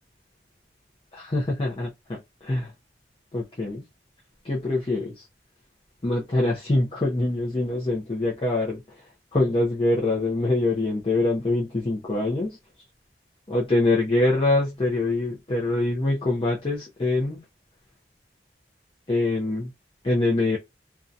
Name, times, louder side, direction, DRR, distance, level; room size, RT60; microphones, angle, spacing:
voice 1, 1.1-2.7 3.3-3.8 4.4-5.1 6.0-8.8 9.3-12.6 13.5-17.4 19.1-19.7 20.0-20.6, left 2 dB, 30° left, 0.6 m, -24 dB
2.7 x 2.3 x 2.4 m
head